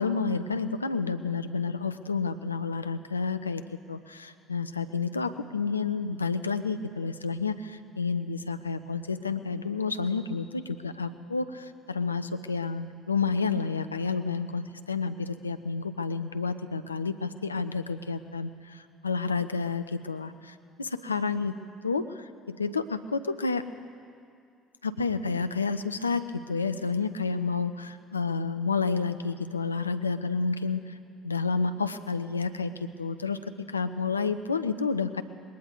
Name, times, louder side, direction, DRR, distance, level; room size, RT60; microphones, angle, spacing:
voice 1, 0.0-3.6 3.9-21.5 21.8-22.0 22.5-23.6 24.8-30.9 31.2-33.4 33.7-35.2, left 4 dB, 85° left, 10 dB, 0.5 m, -30 dB
20.0 x 19.0 x 3.8 m, 2.3 s
figure-of-eight pair, 55°, 0 cm